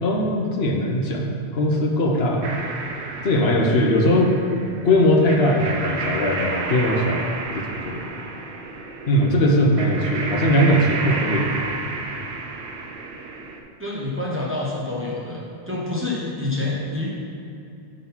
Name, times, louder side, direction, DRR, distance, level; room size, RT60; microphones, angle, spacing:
voice 1, 0.0-2.5 3.2-4.4 4.8-7.3 7.5-8.0 9.1-11.5, equal, 70° left, 0 dB, 1.1 m, -20 dB
sound 1, 2.4-13.6, right 3 dB, 90° right, 0.9 m, -31 dB
voice 2, 13.8-15.4 15.7-17.2, left 2 dB, 15° right, -6 dB, 0.9 m, -27 dB
6.0 x 3.9 x 5.6 m, 2.6 s
omnidirectional pair, 1.1 m